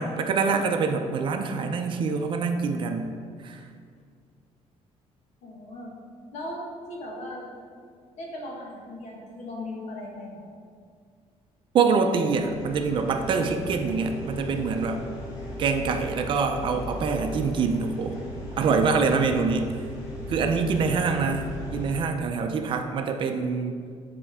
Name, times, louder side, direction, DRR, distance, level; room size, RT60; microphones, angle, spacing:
voice 1, 0.0-3.1 3.4-3.6 11.7-15.0 15.6-18.2 18.6-19.6 20.3-23.8, right 5 dB, 45° right, 5 dB, 0.5 m, -25 dB
voice 2, 5.4-6.0 6.3-6.6 6.9-7.5 8.2-10.5 19.1-19.5, left 1 dB, 70° left, -2 dB, 1.6 m, -38 dB
sound 1, 12.2-22.0, equal, 30° left, 1.7 m, -37 dB
10.0 x 4.3 x 3.6 m, 2.1 s
cardioid pair, 165°, 12 cm